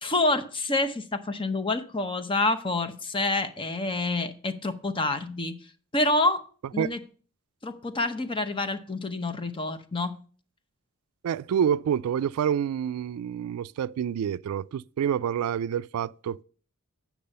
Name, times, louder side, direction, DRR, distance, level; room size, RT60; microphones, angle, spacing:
voice 1, 0.0-5.6 5.9-6.4 6.7-7.0 7.6-10.2, left 2 dB, 25° left, 0.7 m, -27 dB
voice 2, 11.2-16.4, right 8 dB, 85° right, 0.3 m, -28 dB
8.6 x 6.1 x 5.4 m
head